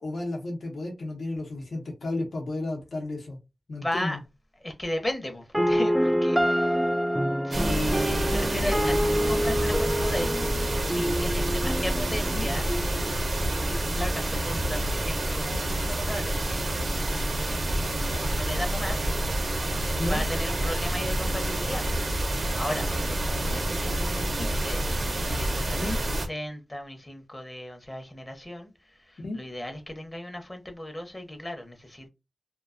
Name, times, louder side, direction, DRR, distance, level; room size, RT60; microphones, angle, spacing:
voice 1, 0.0-3.4 3.7-4.2 12.3-12.5 20.0-20.2 25.8-26.0 29.2-29.4, left 2 dB, 80° left, 0.8 m, -32 dB
voice 2, 3.8-4.2 4.6-6.9 7.4-10.3 10.8-12.7 13.7-17.4 18.0-22.0 22.2-24.8 25.4-25.9 26.3-32.1, left 1 dB, 25° left, 0.7 m, -36 dB
sound 1, 5.5-13.5, equal, 5° right, 0.3 m, -27 dB
sound 2, 7.5-26.3, right 1 dB, 70° right, 0.5 m, -28 dB
2.3 x 2.2 x 2.3 m
wide cardioid pair, 80°, 0 cm